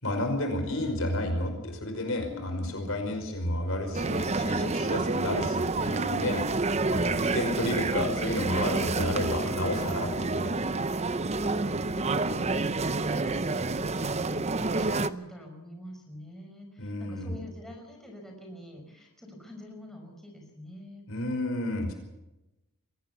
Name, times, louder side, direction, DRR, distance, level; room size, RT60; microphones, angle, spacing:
voice 1, 0.0-6.5 6.9-10.5 16.8-17.3 21.1-21.9, left 1 dB, 65° left, 5 dB, 5.3 m, -31 dB
voice 2, 2.2-3.1 11.6-21.1, left 1 dB, ahead, 1 dB, 5.7 m, -46 dB
sound 1, 3.9-15.1, right 3 dB, 30° right, 0.8 m, -28 dB
23.5 x 17.5 x 7.1 m, 0.95 s
head